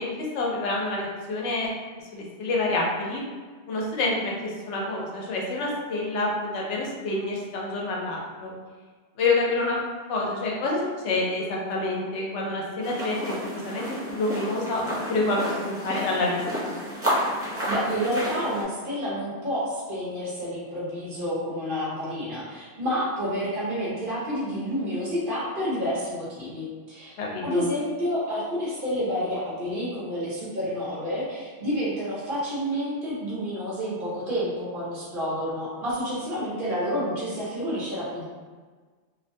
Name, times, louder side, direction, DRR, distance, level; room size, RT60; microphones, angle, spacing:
voice 1, 0.0-1.7 2.1-3.2 3.7-8.5 9.2-16.7 27.2-27.6, left 2 dB, 90° left, -2 dB, 0.9 m, -28 dB
sound 1, 12.8-18.6, equal, 20° right, 0.3 m, -31 dB
voice 2, 17.7-27.1 27.4-38.2, equal, 50° right, -7 dB, 1.0 m, -29 dB
2.6 x 2.1 x 2.6 m, 1.5 s
omnidirectional pair, 1.2 m